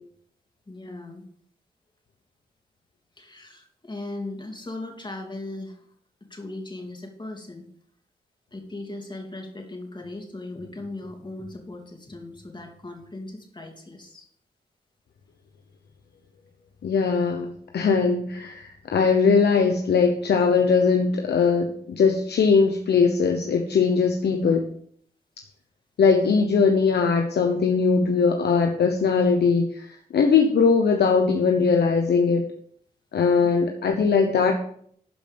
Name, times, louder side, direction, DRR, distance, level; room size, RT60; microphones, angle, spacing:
voice 1, 0.7-1.2 3.2-5.9 6.3-7.7 8.5-14.3 24.4-24.6 33.4-33.5, left 2 dB, 25° left, 2 dB, 3.0 m, -38 dB
voice 2, 16.8-24.6 26.0-32.5 33.1-34.6, left 5 dB, 75° left, 4 dB, 1.0 m, -20 dB
12.0 x 5.2 x 5.3 m, 0.64 s
cardioid pair, 55°, 17 cm